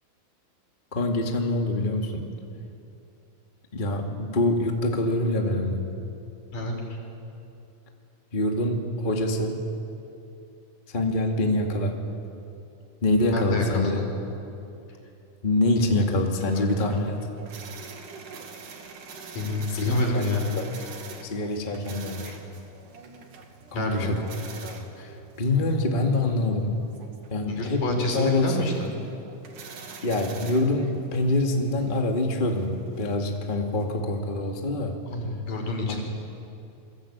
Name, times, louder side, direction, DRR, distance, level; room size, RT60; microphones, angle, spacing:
voice 1, 0.9-2.3 3.7-5.8 8.3-9.6 10.9-12.0 13.0-14.0 15.4-17.2 19.7-20.2 20.5-20.6 21.3-22.4 23.7-24.2 24.5-26.8 27.3-27.8 28.1-28.6 30.0-34.9 35.9-36.0, left 2 dB, 20° left, 2 dB, 1.7 m, -25 dB
voice 2, 6.5-7.0 13.2-14.0 15.8-16.0 16.5-16.7 19.3-20.4 23.7-24.1 27.5-28.9 35.1-36.0, left 2 dB, 65° left, 1 dB, 5.9 m, -28 dB
sound 1, 16.1-34.0, right 5 dB, 65° right, 3.6 m, -45 dB
28.0 x 22.5 x 8.8 m, 2.7 s
omnidirectional pair, 4.1 m